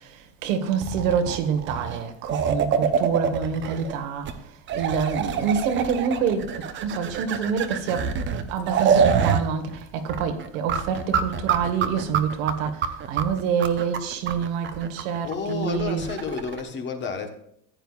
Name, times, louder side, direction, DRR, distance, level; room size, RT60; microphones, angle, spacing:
voice 1, 0.0-8.1 8.5-16.0, right 7 dB, 75° right, 1.7 m, -27 dB
sound 1, 0.8-3.9 4.2-4.3 4.7-9.4 9.7-9.8 10.1-16.6, right 7 dB, 30° right, 0.8 m, -25 dB
voice 2, 15.2-17.3, left 5 dB, 25° left, 1.3 m, -30 dB
15.0 x 9.1 x 2.5 m
cardioid pair, 150°, 41 cm